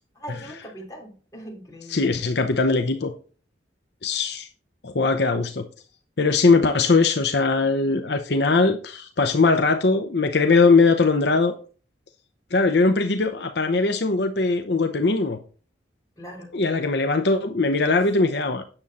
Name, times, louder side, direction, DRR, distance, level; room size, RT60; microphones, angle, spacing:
voice 1, 0.1-2.1 16.2-16.5, equal, 20° left, -2 dB, 3.3 m, -40 dB
voice 2, 1.9-3.1 4.0-4.5 4.8-5.7 6.2-11.5 12.5-15.4 16.5-18.6, left 3 dB, 65° left, 7 dB, 0.7 m, -20 dB
8.8 x 7.1 x 4.2 m, 0.39 s
head